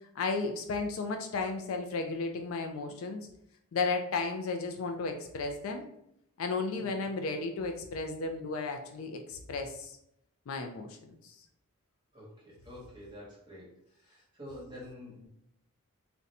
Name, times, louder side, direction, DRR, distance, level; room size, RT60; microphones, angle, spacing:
voice 1, 0.2-3.3 3.7-5.8 6.4-10.0 10.5-11.4, left 3 dB, 65° left, 4 dB, 0.4 m, -34 dB
voice 2, 12.1-13.7 14.1-15.3, left 1 dB, 20° right, -6 dB, 1.1 m, -47 dB
2.5 x 2.2 x 4.0 m, 0.76 s
head